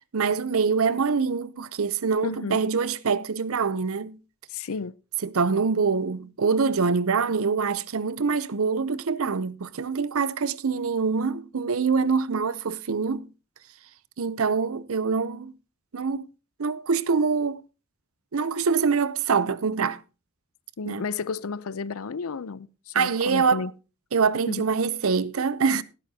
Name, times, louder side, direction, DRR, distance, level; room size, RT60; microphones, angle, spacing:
voice 1, 0.1-4.2 5.2-13.3 14.2-15.5 15.9-16.3 16.6-17.6 18.3-20.0 20.8-21.0 22.9-23.7 24.1-25.8, right 5 dB, 75° right, 0.6 m, -25 dB
voice 2, 2.2-2.6 4.5-4.9 20.8-23.7 24.5-24.6, left 5 dB, 80° left, 0.5 m, -32 dB
17.0 x 10.5 x 2.8 m
head